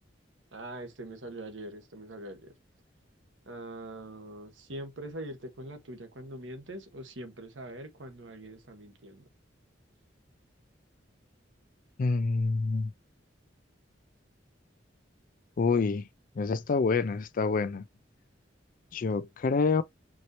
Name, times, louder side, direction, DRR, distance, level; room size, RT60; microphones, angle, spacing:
voice 1, 0.5-2.5 3.5-9.2, right 1 dB, 80° right, 1.2 m, -43 dB
voice 2, 12.0-12.9 15.6-16.0 16.4-17.8 18.9-19.8, left 4 dB, 45° left, 0.4 m, -27 dB
4.5 x 2.7 x 2.9 m
head